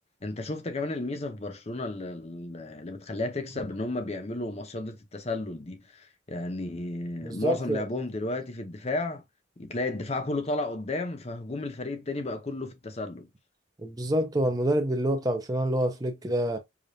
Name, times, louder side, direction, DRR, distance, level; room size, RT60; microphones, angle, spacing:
voice 1, 0.2-9.2 9.6-13.3, left 2 dB, 35° left, 0.7 m, -33 dB
voice 2, 7.2-7.8 13.8-16.6, right 1 dB, 20° right, 0.6 m, -27 dB
5.0 x 2.4 x 2.7 m
head